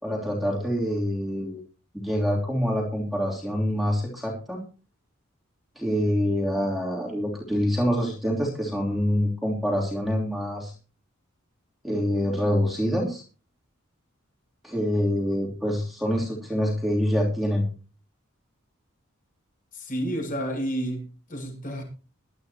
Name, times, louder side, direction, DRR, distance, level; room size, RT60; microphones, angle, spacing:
voice 1, 0.0-1.6 1.9-4.6 5.7-10.7 11.8-13.2 14.6-17.6, equal, ahead, 3.1 m, -26 dB
voice 2, 19.7-21.8, equal, 40° left, 7.2 m, -30 dB
20.5 x 12.0 x 2.9 m
head